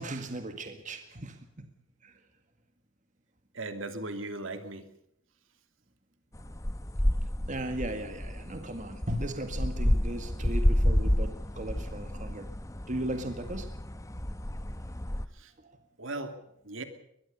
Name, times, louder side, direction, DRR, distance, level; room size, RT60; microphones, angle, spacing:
voice 1, 0.0-1.7 2.0-2.2 7.4-12.5 12.9-13.7 15.6-15.8, right 1 dB, 35° right, 7 dB, 1.9 m, -37 dB
voice 2, 3.5-4.8 15.3-15.5 16.0-16.4 16.6-16.8, right 2 dB, 70° right, 8 dB, 2.8 m, -37 dB
sound 1, 6.3-15.3, equal, 15° left, 0.9 m, -30 dB
22.0 x 21.5 x 5.5 m, 0.75 s
head